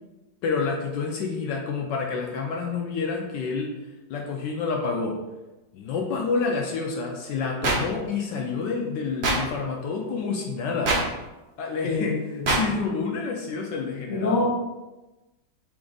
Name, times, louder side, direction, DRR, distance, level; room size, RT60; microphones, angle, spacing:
voice 1, 0.4-3.7 4.1-5.1 5.7-10.9 11.6-12.1 12.5-14.5, left 4 dB, 75° left, 1 dB, 1.2 m, -28 dB
sound 1, 7.6-7.8 9.2-9.4 10.8-11.0 12.4-12.6, right 2 dB, 45° right, 0.6 m, -22 dB
voice 2, 11.8-12.6 14.1-14.5, left 3 dB, 50° left, -2 dB, 0.9 m, -26 dB
3.6 x 3.4 x 3.8 m, 1.1 s
omnidirectional pair, 2.1 m